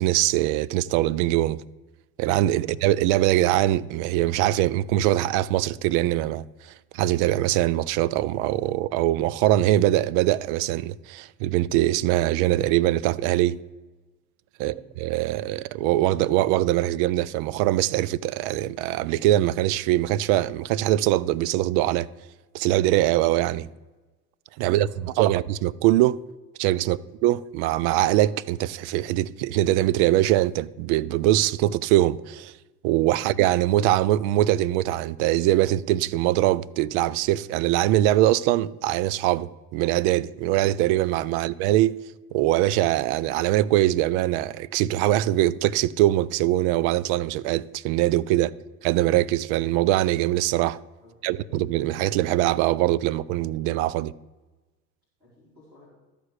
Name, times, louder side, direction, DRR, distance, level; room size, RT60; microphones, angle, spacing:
voice 1, 0.0-1.6 2.2-13.6 14.6-22.1 22.5-23.7 24.6-26.2 26.6-32.5 32.8-42.0 42.3-48.5 48.8-50.8 51.2-54.1, right 14 dB, 50° right, 0.5 m, -22 dB
voice 2, 24.5-25.3 26.9-27.1 48.4-48.5 51.0-51.4 55.2-55.9, left 2 dB, 90° right, 3.8 m, -54 dB
12.5 x 5.1 x 6.5 m
figure-of-eight pair, 70°, 49 cm